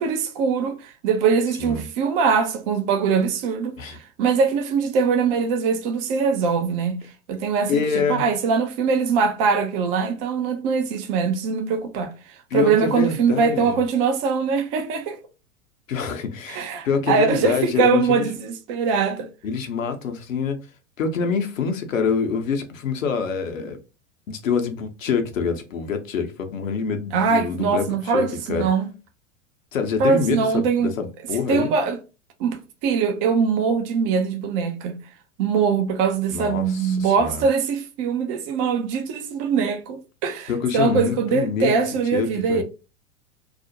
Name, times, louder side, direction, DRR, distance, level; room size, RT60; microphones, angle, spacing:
voice 1, 0.0-7.0 7.3-15.2 16.5-19.3 27.1-28.9 30.0-30.9 31.5-32.0 32.4-35.0 35.4-42.6, right 5 dB, 25° right, 0.3 m, -22 dB
voice 2, 7.7-8.2 12.5-13.8 15.9-18.3 19.4-20.6 21.0-23.8 24.3-28.2 28.5-28.7 29.7-31.7 36.3-37.4 40.5-41.8 42.1-42.6, left 5 dB, 70° left, 0.7 m, -26 dB
2.4 x 2.0 x 2.7 m
figure-of-eight pair, 95°, 41 cm